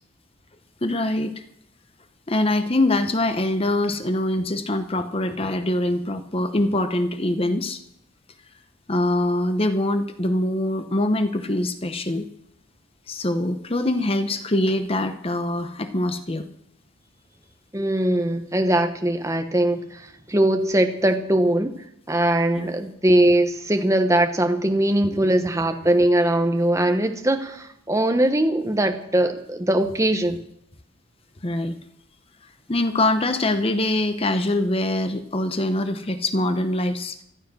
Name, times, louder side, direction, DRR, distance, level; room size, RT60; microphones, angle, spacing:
voice 1, 0.8-1.4 2.3-7.8 8.9-12.3 13.1-16.4 22.6-22.7 25.0-25.2 31.4-31.8 32.7-37.2, left 1 dB, 25° left, 9 dB, 0.9 m, -23 dB
voice 2, 17.7-21.7 22.1-30.4, right 1 dB, 15° right, 6 dB, 1.1 m, -21 dB
14.5 x 12.0 x 6.2 m, 0.75 s
head